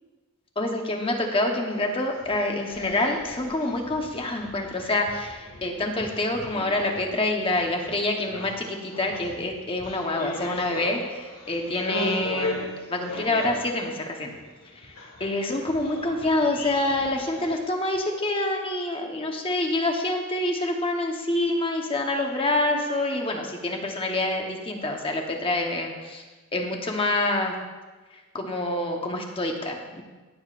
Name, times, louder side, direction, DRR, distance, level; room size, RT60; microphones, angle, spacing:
voice 1, 0.6-12.6 12.9-14.3 14.8-14.9 15.2-26.2 26.5-27.5 28.3-30.0, left 2 dB, 25° left, 2 dB, 1.0 m, -27 dB
sound 1, 1.7-17.6, left 1 dB, 85° left, 1.7 m, -37 dB
17.0 x 7.1 x 2.5 m, 1.3 s
head